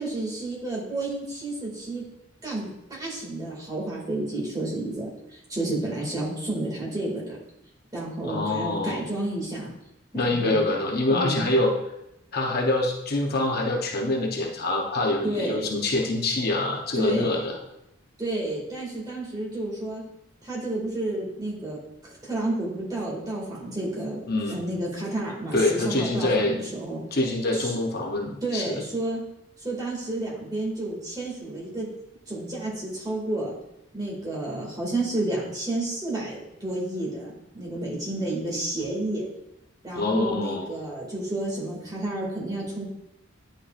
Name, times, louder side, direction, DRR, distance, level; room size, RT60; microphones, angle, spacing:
voice 1, 0.0-2.0 2.4-5.1 5.5-7.4 7.9-9.7 10.1-10.6 11.1-11.5 15.2-15.7 16.9-17.5 18.2-20.0 20.4-24.2 24.5-27.0 27.5-27.7 28.4-29.2 29.6-31.9 32.3-33.5 33.9-39.2 39.8-42.8, right 2 dB, 20° right, -5 dB, 2.2 m, -31 dB
voice 2, 8.2-9.0 10.1-11.7 12.3-17.6 24.3-24.6 25.5-26.6 27.1-28.8 39.9-40.7, left 2 dB, 50° left, 1 dB, 0.8 m, -25 dB
9.9 x 5.2 x 2.5 m, 0.85 s
head